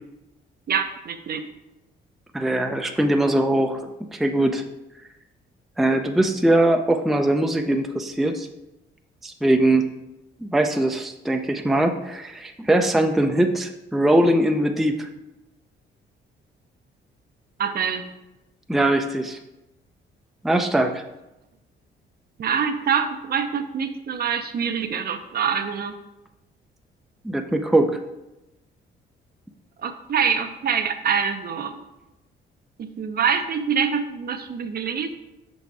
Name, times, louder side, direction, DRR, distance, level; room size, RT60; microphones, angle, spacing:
voice 1, 0.7-1.5 17.6-18.1 22.4-25.9 29.8-31.8 32.8-35.1, right 7 dB, 50° right, 8 dB, 0.6 m, -25 dB
voice 2, 2.3-3.8 4.1-4.6 5.8-8.5 9.2-9.8 10.4-15.1 18.7-19.4 20.4-21.0 27.2-28.0, right 1 dB, ahead, 5 dB, 0.4 m, -21 dB
5.6 x 4.1 x 4.7 m, 0.95 s
cardioid pair, 90°, 20 cm